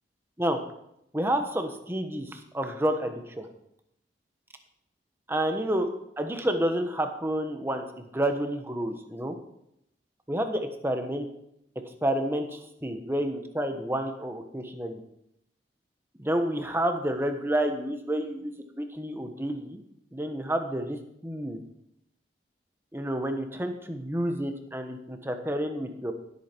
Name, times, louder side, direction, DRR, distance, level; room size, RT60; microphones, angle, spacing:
voice 1, 1.1-3.5 5.3-5.9 6.2-7.8 8.1-9.4 10.3-11.3 12.0-15.0 16.2-19.8 20.1-21.0 21.2-21.6 22.9-26.1, right 1 dB, 15° right, 5 dB, 1.2 m, -29 dB
16.0 x 8.4 x 4.6 m, 0.77 s
head